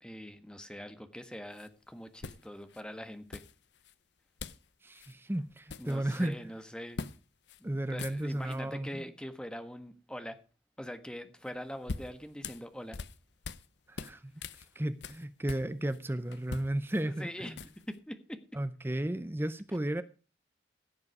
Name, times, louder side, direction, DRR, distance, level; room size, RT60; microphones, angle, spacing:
voice 1, 0.0-3.4 5.8-7.0 7.6-10.4 10.8-13.0 17.1-17.5 17.9-18.4, equal, 5° left, 1.3 m, -43 dB
sound 1, 1.5-1.7 2.2-2.8 3.3-3.9 4.4-4.7 4.9-5.1 5.5-6.3 7.0-7.2 7.5-7.6 7.9-8.6 11.5-13.7 14.0-16.0 16.3-18.0, left 4 dB, 80° left, 0.8 m, -43 dB
voice 2, 4.8-6.5 7.6-9.0 13.9-14.4 14.8-17.5 18.5-20.0, right 1 dB, 15° right, 0.5 m, -34 dB
16.0 x 7.3 x 4.7 m
head